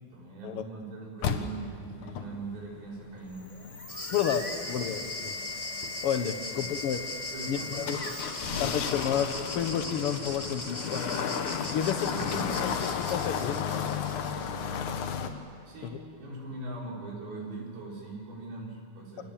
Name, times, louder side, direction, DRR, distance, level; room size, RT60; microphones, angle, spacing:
voice 1, 0.1-4.2 4.6-4.9 6.5-6.7 7.3-8.8 10.9-11.2 11.8-12.8 15.7-19.3, right 3 dB, 75° right, -3 dB, 7.4 m, -41 dB
sound 1, 1.2-15.3, left 7 dB, 60° left, 2.5 m, -34 dB
sound 2, 3.2-8.5, left 5 dB, 45° left, 0.9 m, -41 dB
sound 3, 3.9-14.8, left 1 dB, 10° left, 1.8 m, -40 dB
voice 2, 4.1-5.4 6.0-7.0 7.5-8.0 8.6-11.1 11.7-13.9 15.8-16.0, left 8 dB, 80° left, 9 dB, 1.3 m, -31 dB
28.5 x 25.5 x 7.5 m, 2.4 s
omnidirectional pair, 4.4 m